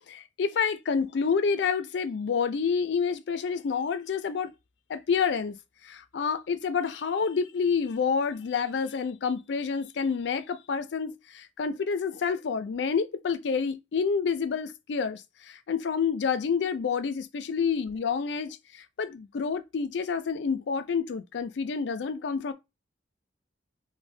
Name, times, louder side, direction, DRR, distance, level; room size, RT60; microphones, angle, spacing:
voice 1, 0.1-4.5 4.9-5.6 5.8-22.5, left 6 dB, 70° left, 0.4 m, -28 dB
2.5 x 2.1 x 3.2 m
head